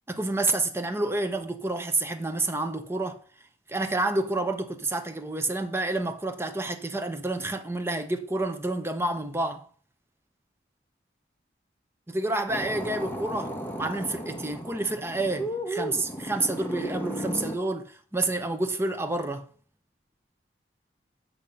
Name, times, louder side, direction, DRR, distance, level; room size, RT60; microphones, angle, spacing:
voice 1, 0.1-3.2 3.7-9.6 12.1-19.5, right 2 dB, 15° right, 0.9 m, -29 dB
sound 1, 12.5-17.6, equal, 10° left, 1.4 m, -34 dB
8.7 x 7.1 x 5.4 m
head